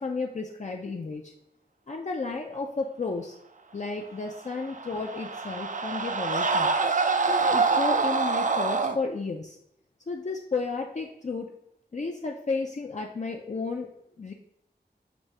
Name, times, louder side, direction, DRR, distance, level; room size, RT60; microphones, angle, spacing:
voice 1, 0.0-1.3 1.9-3.3 3.7-6.7 7.3-9.6 10.1-11.5 11.9-13.9 14.2-14.3, left 4 dB, 40° left, 1 dB, 0.4 m, -32 dB
sound 1, 4.5-9.0, right 4 dB, 45° right, 0.4 m, -25 dB
6.1 x 2.7 x 3.2 m, 0.75 s
wide cardioid pair, 45°, 18 cm